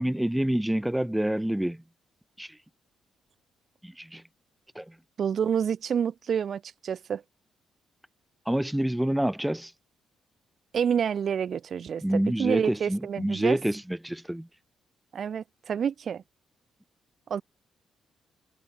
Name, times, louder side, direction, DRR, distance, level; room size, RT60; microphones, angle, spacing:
voice 1, 0.0-1.8 2.4-2.6 3.8-4.2 4.7-5.0 8.5-9.7 12.0-14.5, right 1 dB, 5° right, 0.3 m, -27 dB
voice 2, 5.2-7.2 10.7-13.6 15.1-16.2 17.3-17.4, right 7 dB, 60° right, 0.5 m, -28 dB
supercardioid pair, 65°, 0 cm